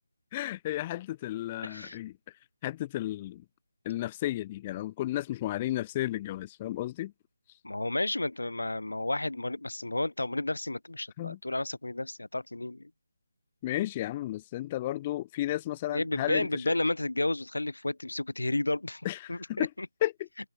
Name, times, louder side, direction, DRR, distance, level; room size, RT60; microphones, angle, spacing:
voice 1, 0.3-2.1 2.6-3.4 3.8-7.1 11.2-11.4 13.6-16.8 19.0-19.7 20.0-20.1, left 14 dB, 20° left, 1.1 m, -33 dB
voice 2, 1.6-2.0 7.6-12.9 15.9-19.9, left 2 dB, 80° left, 1.9 m, -32 dB
figure-of-eight pair, 160°, 0 cm